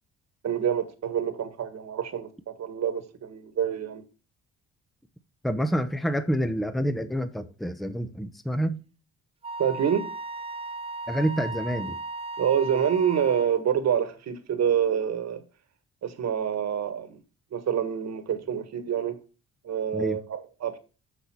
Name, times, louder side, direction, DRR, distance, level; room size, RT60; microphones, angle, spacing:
voice 1, 0.4-4.0 9.6-10.1 12.4-15.4 16.0-17.2 17.5-19.2 19.6-20.8, right 8 dB, 60° right, 1.6 m, -27 dB
voice 2, 5.4-8.8 11.1-12.0 19.9-20.2, equal, ahead, 0.8 m, -28 dB
Wind instrument woodwind instrument, 9.4-13.6, right 2 dB, 20° right, 0.4 m, -36 dB
6.7 x 6.4 x 4.3 m
cardioid pair, 90°, 30 cm